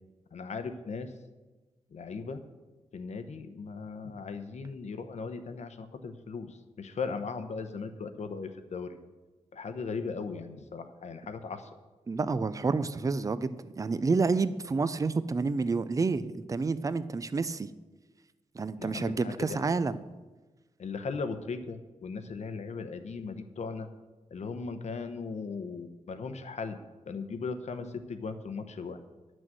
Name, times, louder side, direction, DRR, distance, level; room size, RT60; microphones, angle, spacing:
voice 1, 0.3-1.1 1.9-2.4 2.9-9.0 9.5-11.7 18.8-19.6 20.8-23.9 24.3-26.8 27.1-29.0, left 4 dB, 60° left, 8 dB, 0.9 m, -38 dB
voice 2, 12.1-17.7 18.5-20.0, right 4 dB, 25° right, 15 dB, 0.4 m, -29 dB
11.0 x 6.2 x 7.7 m, 1.2 s
wide cardioid pair, 170°, 13 cm